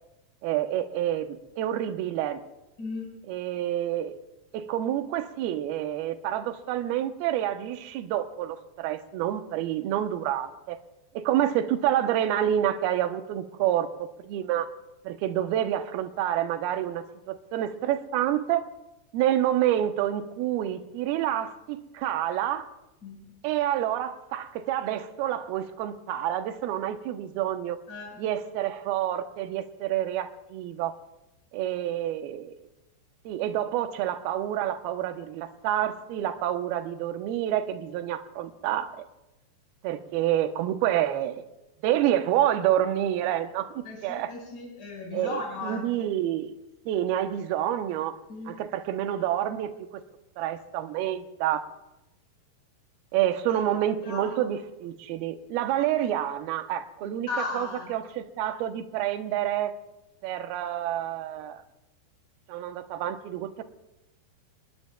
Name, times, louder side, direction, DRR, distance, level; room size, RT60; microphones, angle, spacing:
voice 1, 0.4-2.4 3.3-4.2 4.5-10.8 11.1-13.9 14.2-14.7 15.1-18.6 19.1-22.7 23.4-27.8 28.2-30.9 31.5-32.5 33.3-38.9 39.8-41.5 41.8-44.3 45.1-46.5 46.9-48.1 48.5-49.7 50.4-51.6 53.1-59.7 60.2-61.6 62.5-63.6, right 11 dB, 75° right, 8 dB, 2.5 m, -28 dB
voice 2, 2.8-3.1 23.0-23.3 27.9-28.2 43.8-45.9 48.3-48.5 54.0-54.5 57.0-57.9, left 3 dB, 25° left, -2 dB, 5.3 m, -36 dB
27.5 x 21.0 x 2.3 m, 0.94 s
omnidirectional pair, 5.0 m